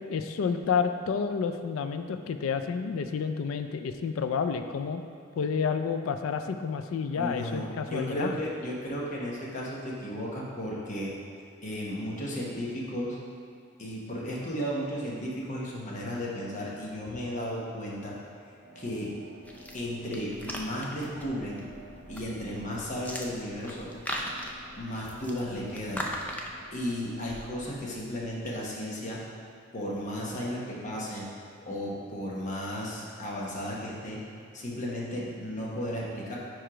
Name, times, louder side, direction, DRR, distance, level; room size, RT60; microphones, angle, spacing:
voice 1, 0.0-5.0 5.4-8.4, left 6 dB, 85° left, 7 dB, 0.3 m, -30 dB
voice 2, 7.1-11.1 11.6-13.2 13.8-18.2 18.7-19.1 19.7-21.7 22.1-23.9 24.8-26.0 26.7-29.2 29.7-31.3 31.6-34.2 34.5-36.4, equal, 40° left, -4 dB, 1.1 m, -34 dB
sound 1, 18.6-27.3, right 1 dB, 65° right, 0.6 m, -51 dB
sound 2, 19.4-28.6, equal, 10° left, 0.4 m, -40 dB
4.7 x 4.5 x 4.9 m, 2.4 s
head